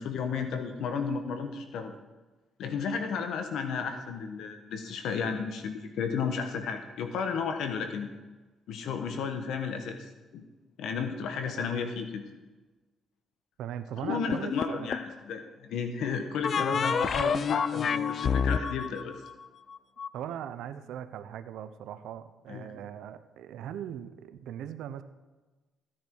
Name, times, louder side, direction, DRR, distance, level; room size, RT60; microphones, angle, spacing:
voice 1, 0.0-1.9 2.6-8.1 8.7-10.0 10.3-10.4 10.8-12.2 14.0-19.2 22.5-22.7, left 6 dB, 80° left, 7 dB, 1.2 m, -33 dB
voice 2, 13.6-14.9 16.7-17.3 20.1-25.0, right 10 dB, 85° right, 11 dB, 0.8 m, -40 dB
sound 1, 14.3-15.2 16.4-20.1, left 6 dB, 50° left, 0.4 m, -29 dB
15.5 x 10.0 x 4.6 m, 1.2 s
cardioid pair, 90°, 0 cm